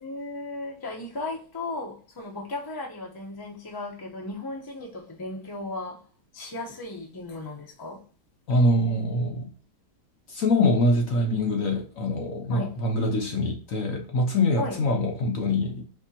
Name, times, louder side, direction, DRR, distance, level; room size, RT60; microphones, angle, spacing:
voice 1, 0.0-6.0 6.3-8.0 12.5-12.7 14.6-14.8, left 2 dB, 20° left, 0.8 m, -35 dB
voice 2, 8.5-9.5 10.3-15.8, left 1 dB, 60° left, 1.1 m, -24 dB
4.4 x 3.5 x 2.8 m
omnidirectional pair, 1.8 m